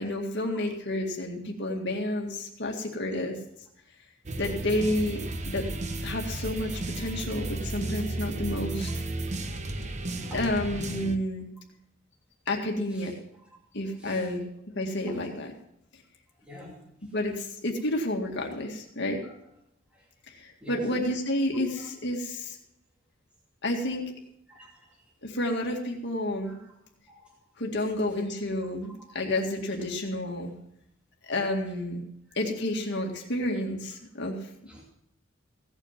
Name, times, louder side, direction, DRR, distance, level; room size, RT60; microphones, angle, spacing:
voice 1, 0.0-3.4 4.4-5.2 5.5-5.7 6.0-8.9 10.3-11.5 12.5-13.1 13.7-14.4 14.8-15.5 17.1-19.2 20.3-22.6 23.6-24.1 25.2-26.6 27.6-30.5 31.2-32.0 32.3-34.5, left 1 dB, 60° left, 1 dB, 2.1 m, -30 dB
sound 1, 4.3-11.2, right 2 dB, 35° right, 1.1 m, -33 dB
voice 2, 9.6-10.5 12.9-13.1 13.9-14.3 15.1-15.4 16.4-17.1 19.2-19.4 19.9-20.1 20.6-20.9 21.8-21.9 24.5-25.0 26.4-26.7 27.1-27.4 34.7-34.8, equal, 5° right, -4 dB, 2.6 m, -49 dB
16.5 x 8.9 x 5.9 m, 0.78 s
head